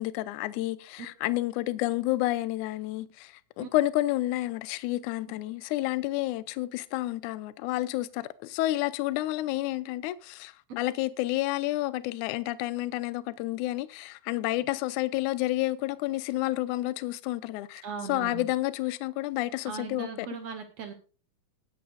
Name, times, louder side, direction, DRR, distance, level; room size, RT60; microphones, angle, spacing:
voice 1, 0.0-20.3, left 17 dB, 80° left, 1.9 m, -30 dB
voice 2, 17.8-18.5 19.6-20.9, right 6 dB, 60° right, 1.9 m, -38 dB
20.0 x 8.7 x 2.6 m
omnidirectional pair, 4.0 m